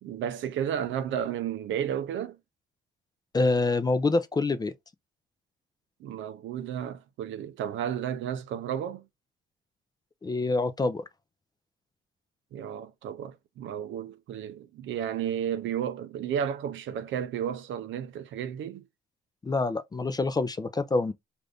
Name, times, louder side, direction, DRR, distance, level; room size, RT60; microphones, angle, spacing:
voice 1, 0.0-2.4 6.0-9.1 12.5-18.9, right 9 dB, 70° right, 0.5 m, -32 dB
voice 2, 3.3-4.7 10.2-11.0 19.4-21.1, left 3 dB, 20° left, 0.4 m, -26 dB
2.5 x 2.5 x 3.3 m
cardioid pair, 90°, 20 cm